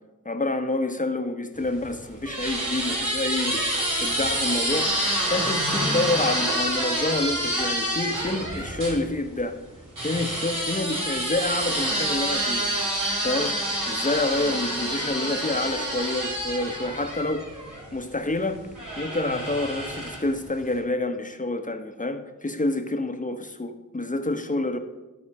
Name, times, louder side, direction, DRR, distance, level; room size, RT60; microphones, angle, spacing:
voice 1, 0.2-4.9 5.2-9.6 10.0-12.7 13.2-13.6 13.9-17.5 17.9-18.6 19.0-24.8, left 2 dB, 25° left, 7 dB, 1.1 m, -28 dB
sound 1, 1.6-9.0 10.0-17.9 18.7-20.4, right 1 dB, 70° right, 3.2 m, -27 dB
12.5 x 4.2 x 5.4 m, 1.1 s
cardioid pair, 40°, 32 cm